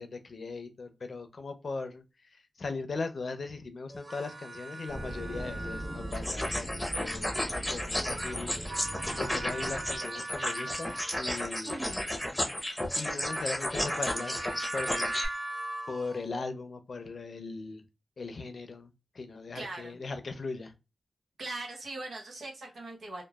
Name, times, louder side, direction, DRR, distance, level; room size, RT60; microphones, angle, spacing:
voice 1, 0.0-8.5 9.2-11.8 13.0-14.4 14.7-15.1 15.9-17.8 18.2-20.7, left 3 dB, 65° left, 8 dB, 0.5 m, -39 dB
sound 1, 3.9-6.5 7.9-11.6 12.8-16.5, right 2 dB, 40° right, 0.7 m, -41 dB
sound 2, 4.9-10.0, equal, 65° right, 1.4 m, -40 dB
sound 3, 6.1-15.3, left 1 dB, 5° left, 0.7 m, -33 dB
voice 2, 11.6-12.1 19.5-20.0 21.4-23.2, right 2 dB, 90° right, 0 dB, 0.8 m, -40 dB
3.0 x 2.2 x 2.2 m, 0.27 s
cardioid pair, 55°, 0 cm